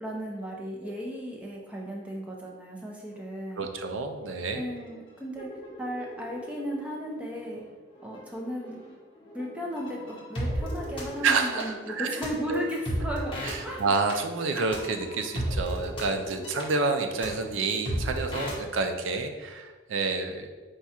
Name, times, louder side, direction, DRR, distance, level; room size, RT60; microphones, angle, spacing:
voice 1, 0.0-3.7 4.5-5.5 5.8-7.6 8.0-8.8 9.3-13.4 13.6-13.8, equal, 5° right, -2 dB, 0.6 m, -35 dB
sound 1, 3.1-3.2 3.5-3.9 4.3-18.6, equal, 25° left, 0.9 m, -36 dB
voice 2, 3.6-4.6 11.2-12.2 12.5-12.6 13.4-20.5, right 4 dB, 80° right, 5 dB, 0.5 m, -29 dB
4.7 x 2.3 x 4.2 m, 1.3 s
head